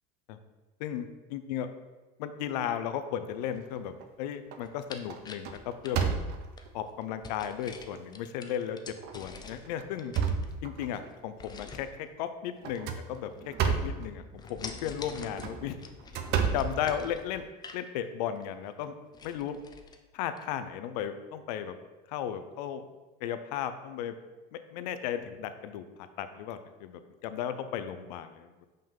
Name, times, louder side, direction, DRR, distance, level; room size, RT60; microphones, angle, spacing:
voice 1, 1.3-1.7 2.2-6.1 6.7-8.8 9.1-10.1 10.6-13.5 13.8-15.8 16.5-17.4 17.7-18.9 19.2-19.6 20.1-21.7 22.1-22.8 23.2-24.2 24.5-25.8 26.2-28.5, left 9 dB, 85° left, 10 dB, 0.6 m, -35 dB
sound 1, 3.5-4.1 4.5-4.8 5.1-6.7 7.4-7.5 7.9-8.0 8.9-9.2 9.6-11.1 12.6-14.1 15.2-17.5, right 6 dB, 55° right, 0.6 m, -32 dB
sound 2, 4.6-6.7 7.2-9.7 10.0-10.8 11.4-11.9 12.7-13.4 13.6-14.0 14.4-17.9 18.4-18.5 18.8-18.9 19.1-20.0 20.4-20.5, left 4 dB, 20° left, 0.5 m, -46 dB
5.5 x 5.3 x 3.7 m, 1.2 s
supercardioid pair, 120°, 21 cm